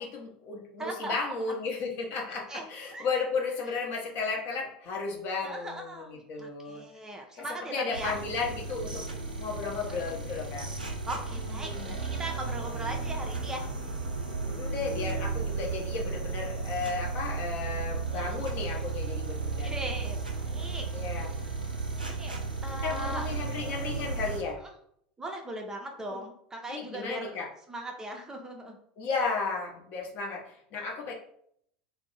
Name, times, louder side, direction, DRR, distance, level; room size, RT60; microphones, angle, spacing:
voice 1, 0.0-6.8 7.4-7.5 7.7-10.7 11.4-11.9 14.5-19.7 20.9-21.3 22.8-24.6 26.1-26.2 26.7-27.5 29.0-31.1, left 4 dB, 45° left, 0 dB, 0.8 m, -34 dB
voice 2, 0.8-1.6 2.5-3.1 5.4-8.2 11.1-13.7 18.1-18.3 19.6-20.9 21.2-21.5 22.0-22.3 22.6-23.2 24.6-24.7 25.2-27.4 27.7-28.8, right 1 dB, 15° right, 2 dB, 0.5 m, -39 dB
sound 1, 7.9-24.4, right 4 dB, 85° right, 0.5 m, -34 dB
2.6 x 2.1 x 4.0 m, 0.68 s
figure-of-eight pair, 75°, 5 cm